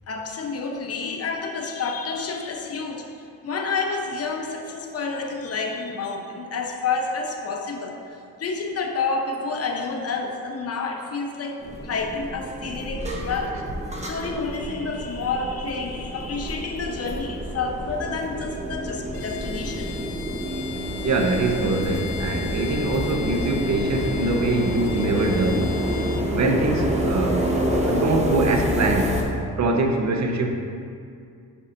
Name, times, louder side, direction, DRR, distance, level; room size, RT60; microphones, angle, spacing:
voice 1, 0.1-13.6 14.0-20.0, left 4 dB, 40° left, 2 dB, 0.9 m, -29 dB
sound 1, 11.6-29.2, equal, 20° right, 1.0 m, -28 dB
Bowed string instrument, 19.1-26.3, left 10 dB, 70° left, 0.5 m, -38 dB
voice 2, 21.0-25.8 26.3-27.4 27.8-29.2 29.6-30.5, right 2 dB, 50° right, 3 dB, 0.9 m, -23 dB
9.8 x 5.6 x 2.6 m, 2.4 s
cardioid pair, 110°, 37 cm